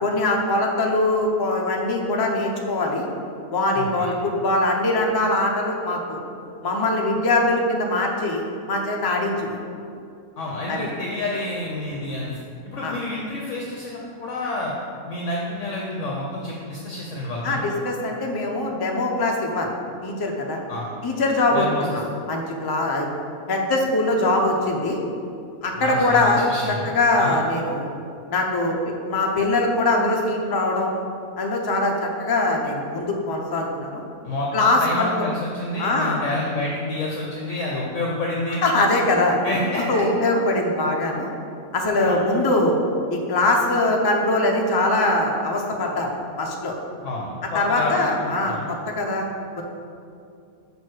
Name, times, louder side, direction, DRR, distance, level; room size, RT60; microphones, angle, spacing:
voice 1, 0.0-3.0 3.5-6.2 6.6-9.6 10.7-10.9 12.8-12.9 17.4-19.7 20.0-20.6 21.0-23.1 23.5-25.0 25.6-27.9 28.3-30.9 31.4-34.0 34.5-35.1 35.8-36.2 38.6-39.4 39.9-41.3 41.7-42.8 43.1-46.1 46.4-46.7 47.5-49.3 49.6-49.7, left 2 dB, 35° left, 0 dB, 0.4 m, -22 dB
voice 2, 3.7-4.1 10.4-12.3 12.6-14.7 15.1-17.7 20.7-20.9 21.5-21.9 25.8-26.9 27.2-27.4 34.2-38.6 39.4-40.0 42.0-42.2 47.0-48.6, left 2 dB, 60° left, -3 dB, 1.0 m, -29 dB
5.2 x 4.7 x 6.3 m, 2.4 s
omnidirectional pair, 1.6 m